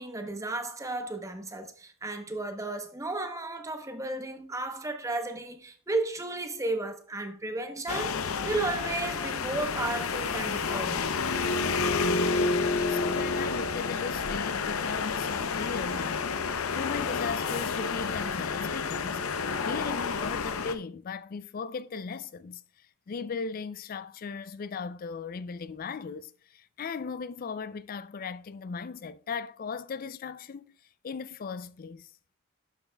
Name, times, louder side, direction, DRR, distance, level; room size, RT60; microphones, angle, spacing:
voice 1, 0.0-11.1, right 2 dB, 15° right, 0.8 m, -34 dB
sound 1, 7.9-20.7, left 4 dB, 85° left, 0.6 m, -30 dB
voice 2, 12.0-12.3 12.9-16.4 16.7-30.6 31.0-32.1, left 5 dB, 40° left, 0.4 m, -37 dB
11.0 x 6.9 x 2.2 m
head